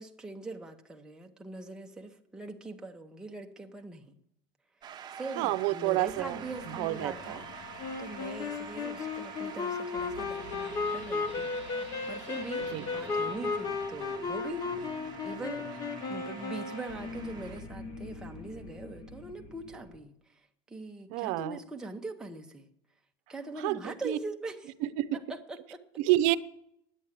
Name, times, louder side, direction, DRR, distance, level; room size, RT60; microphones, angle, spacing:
voice 1, 0.0-4.2 4.8-11.5 11.8-14.9 15.2-15.7 16.1-22.7 23.3-24.7 25.1-25.8, right 2 dB, 5° right, 0.9 m, -42 dB
Shout / Cheering / Applause, 4.8-17.6, right 9 dB, 35° right, 0.9 m, -48 dB
voice 2, 5.4-6.4 6.8-7.4 12.7-12.8 21.1-21.6 23.6-23.8 24.0-24.2 24.8-25.2 26.0-26.4, right 16 dB, 70° right, 0.6 m, -28 dB
sound 1, 6.0-20.0, left 2 dB, 55° left, 1.9 m, -45 dB
Wind instrument woodwind instrument, 7.8-17.3, left 4 dB, 30° left, 0.9 m, -35 dB
10.0 x 8.7 x 8.3 m
cardioid pair, 140°, 13 cm